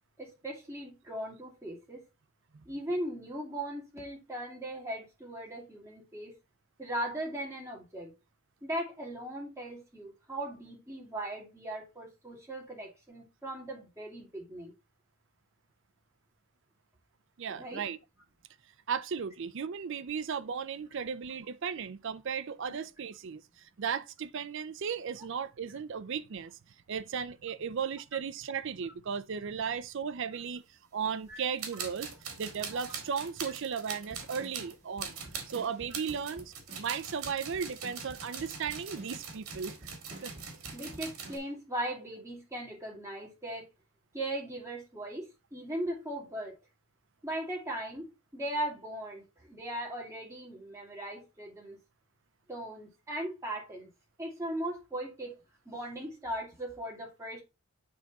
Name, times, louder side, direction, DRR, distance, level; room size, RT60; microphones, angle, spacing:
voice 1, 0.2-2.0 2.7-6.3 6.8-8.1 8.6-14.7 17.5-17.8 31.3-31.4 31.7-31.9 40.7-43.7 44.1-46.6 47.2-51.8 52.5-53.9 54.2-55.4 55.7-57.4, right 1 dB, 15° right, 2.3 m, -38 dB
voice 2, 17.4-18.0 18.9-26.6 26.9-30.6 30.9-32.1 32.4-35.2 35.5-39.8 40.2-40.3, right 6 dB, 55° right, 0.4 m, -36 dB
sound 1, 31.3-31.4 31.6-41.4, right 6 dB, 85° right, 2.0 m, -42 dB
sound 2, 34.1-41.5, right 1 dB, 30° right, 1.6 m, -51 dB
8.8 x 3.6 x 4.0 m
head